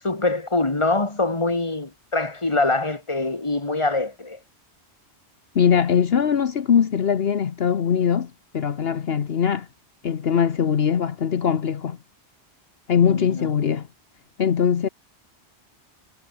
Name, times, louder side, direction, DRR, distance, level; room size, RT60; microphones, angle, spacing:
voice 1, 0.0-4.4 13.1-13.5, left 2 dB, 25° left, 2.2 m, -24 dB
voice 2, 5.5-9.7 10.0-12.0 12.9-13.9 14.4-14.9, left 7 dB, 65° left, 1.2 m, -21 dB
omnidirectional pair, 1.1 m